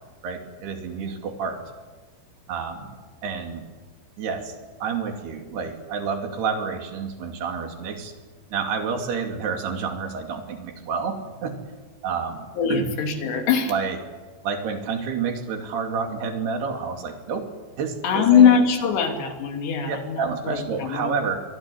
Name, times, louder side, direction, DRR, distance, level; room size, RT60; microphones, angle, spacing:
voice 1, 0.2-1.6 2.5-3.0 3.2-3.7 4.2-4.6 4.8-8.1 8.5-11.5 12.0-12.4 12.7-12.9 13.7-14.0 14.4-17.5 17.8-18.5 19.9-21.4, right 5 dB, 65° right, 4 dB, 4.5 m, -29 dB
voice 2, 12.5-13.7 18.0-21.1, left 7 dB, 70° left, 5 dB, 4.8 m, -21 dB
25.0 x 22.0 x 10.0 m, 1.3 s
omnidirectional pair, 5.3 m